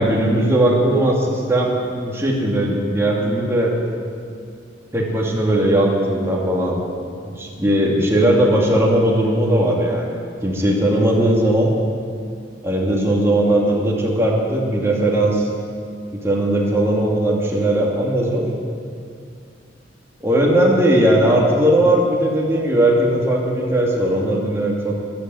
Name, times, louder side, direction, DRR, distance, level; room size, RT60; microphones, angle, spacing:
voice 1, 0.0-1.7 2.0-3.7 4.9-6.8 7.3-10.2 10.4-11.7 12.6-15.5 16.2-18.4 20.2-24.9, right 1 dB, 15° right, -2 dB, 2.5 m, -18 dB
13.5 x 12.0 x 7.9 m, 2.4 s
head